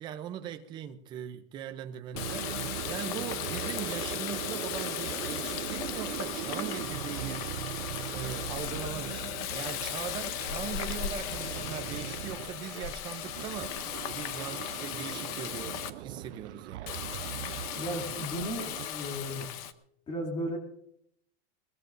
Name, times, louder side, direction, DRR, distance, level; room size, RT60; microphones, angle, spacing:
voice 1, 0.0-7.5 8.1-13.8 14.1-16.9, right 9 dB, 15° right, 0.5 m, -40 dB
Water tap faucet, 2.1-15.9 16.9-19.7, left 10 dB, 35° left, 0.7 m, -37 dB
sound 1, 2.1-18.9 19.2-19.5, right 14 dB, 85° right, 0.6 m, -40 dB
voice 2, 17.7-19.4 20.1-20.6, equal, 15° left, 2.6 m, -35 dB
21.5 x 20.0 x 2.6 m
supercardioid pair, 175°, 34 cm